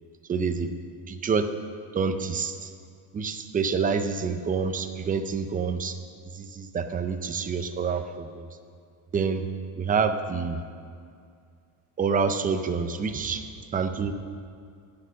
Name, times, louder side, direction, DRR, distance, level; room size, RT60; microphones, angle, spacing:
voice 1, 0.3-0.7 1.1-1.5 1.9-2.7 3.1-6.0 6.3-8.5 9.1-9.4 9.8-10.6 12.0-13.4 13.7-14.1, right 5 dB, 20° right, 8 dB, 0.4 m, -27 dB
19.5 x 6.6 x 6.4 m, 2.3 s
cardioid pair, 165°, 50 cm